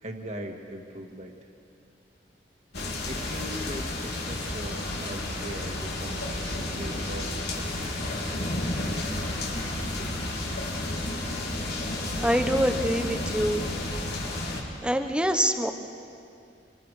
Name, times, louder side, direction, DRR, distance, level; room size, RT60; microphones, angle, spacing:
voice 1, 0.0-1.3 3.1-8.0, equal, 40° right, 3 dB, 2.0 m, -40 dB
sound 1, 2.7-14.6, left 1 dB, 65° left, 3.6 m, -31 dB
voice 2, 12.2-13.6 14.8-15.7, equal, 5° right, 6 dB, 1.1 m, -25 dB
27.0 x 24.5 x 5.0 m, 2.5 s
head